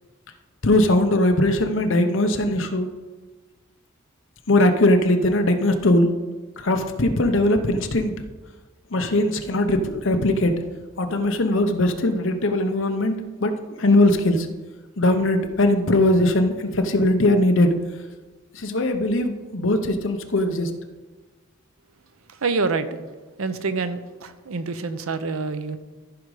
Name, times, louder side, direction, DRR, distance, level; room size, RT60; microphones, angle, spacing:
voice 1, 0.6-2.9 4.5-6.1 6.6-8.1 8.9-10.5 11.0-14.5 15.0-17.7 18.5-20.7, left 1 dB, 65° left, 6 dB, 0.9 m, -20 dB
voice 2, 22.3-22.9 23.4-25.8, right 4 dB, 90° right, 11 dB, 0.7 m, -26 dB
14.0 x 5.1 x 4.9 m, 1.3 s
head